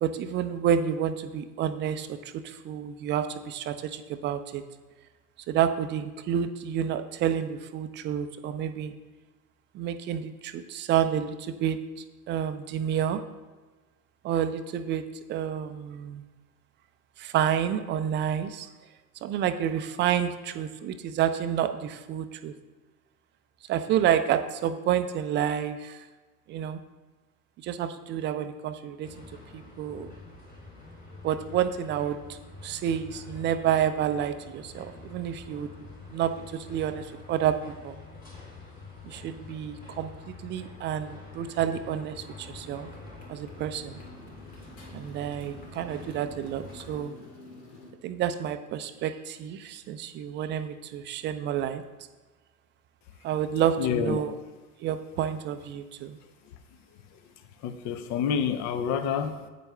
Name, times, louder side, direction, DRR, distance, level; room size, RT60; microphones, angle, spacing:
voice 1, 0.0-4.6 5.5-8.9 9.7-11.8 12.3-13.2 14.2-15.0 15.3-16.2 17.2-18.7 19.2-22.5 23.7-26.0 26.5-26.8 27.6-29.1 29.5-30.1 31.2-35.7 36.1-37.6 37.8-38.0 39.0-42.9 43.3-44.0 44.9-47.1 48.0-51.8 53.2-54.3 54.8-56.2, right 9 dB, 25° right, 10 dB, 0.5 m, -29 dB
sound 1, 29.0-47.0, left 3 dB, 15° left, 3.0 m, -46 dB
Motorcycle, 40.7-47.9, left 2 dB, 65° left, 2.2 m, -50 dB
voice 2, 53.8-54.2 56.4-56.5 57.1-57.3 57.6-59.5, left 7 dB, 35° left, 11 dB, 0.7 m, -29 dB
8.8 x 8.3 x 3.3 m, 1.3 s
figure-of-eight pair, 75°, 49 cm